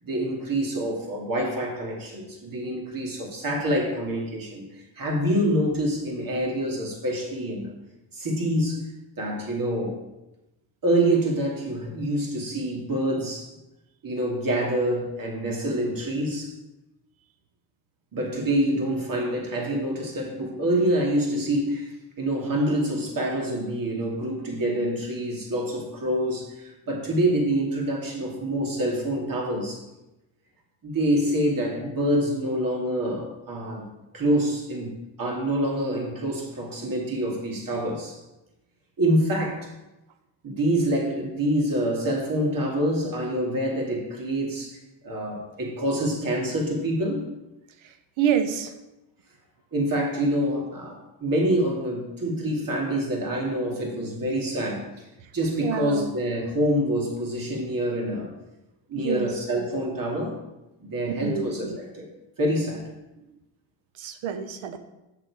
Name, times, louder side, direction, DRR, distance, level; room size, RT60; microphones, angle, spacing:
voice 1, 0.0-4.6 5.0-7.7 8.1-8.8 9.2-10.0 10.8-13.5 14.0-16.5 18.1-29.8 30.8-33.9 34.1-38.2 39.0-39.7 40.4-47.3 49.7-54.9 55.3-58.3 58.9-60.4 60.8-61.7 61.9-62.0 62.4-62.8, right 1 dB, 45° right, 0 dB, 2.6 m, -26 dB
voice 2, 47.8-48.7 55.6-56.1 58.9-59.7 61.2-61.8 63.2-63.3 64.0-64.8, right 8 dB, 80° right, 9 dB, 1.0 m, -28 dB
7.4 x 6.8 x 4.8 m, 0.97 s
cardioid pair, 90°, 46 cm